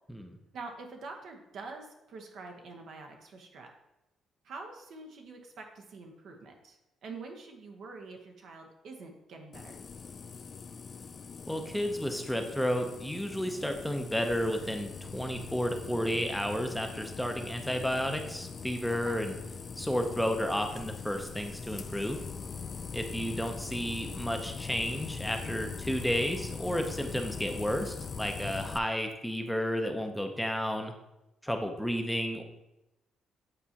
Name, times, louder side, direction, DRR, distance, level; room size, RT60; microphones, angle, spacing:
voice 1, 0.5-3.7 4.4-9.8 18.9-19.2, right 3 dB, 70° right, 3 dB, 1.0 m, -46 dB
sound 1, 9.5-28.8, left 5 dB, 40° left, 0.3 m, -42 dB
voice 2, 11.5-19.3 19.8-22.2 22.9-30.9 31.4-32.4, equal, 5° left, 4 dB, 0.7 m, -32 dB
8.3 x 4.2 x 2.9 m, 0.93 s
cardioid pair, 90°, 0 cm